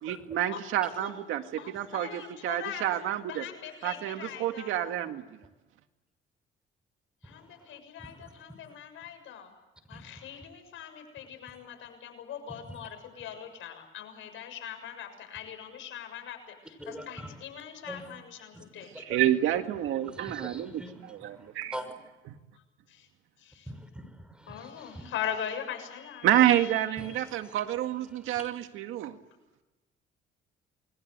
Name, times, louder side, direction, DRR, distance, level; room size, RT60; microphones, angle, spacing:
voice 1, 0.0-3.5 3.8-5.2 19.0-21.7 26.2-29.2, right 12 dB, 90° right, 7 dB, 2.0 m, -28 dB
voice 2, 1.6-2.9 3.3-5.0 7.2-9.5 9.9-19.0 22.9-23.1 23.4-23.7 24.5-27.2, left 9 dB, 80° left, 6 dB, 6.8 m, -41 dB
voice 3, 7.2-7.7 8.0-8.3 9.9-10.1 12.7-12.8 16.8-17.4 17.9-18.1 18.5-18.6 19.1-19.2 19.9-21.9 23.7-25.1 27.0-27.6 28.1-28.4, equal, 5° right, 9 dB, 6.1 m, -44 dB
29.0 x 21.5 x 8.2 m, 1.1 s
cardioid pair, 90°, 20 cm